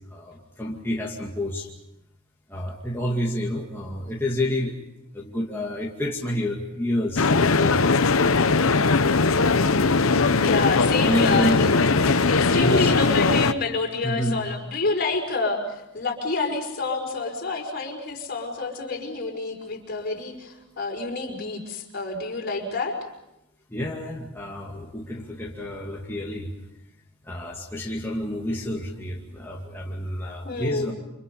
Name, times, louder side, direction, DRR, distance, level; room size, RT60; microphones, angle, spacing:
voice 1, 0.1-1.7 2.5-4.8 5.1-8.0 11.0-12.0 12.5-12.9 13.4-13.5 14.0-14.4 23.7-26.5 27.2-30.9, left 1 dB, 10° left, -3 dB, 2.3 m, -29 dB
sound 1, 7.2-13.5, left 4 dB, 75° left, 0.9 m, -20 dB
voice 2, 10.4-11.8 12.3-15.6 15.9-23.0 30.4-30.9, left 3 dB, 50° left, 1 dB, 5.2 m, -28 dB
29.0 x 27.0 x 5.4 m, 0.90 s
head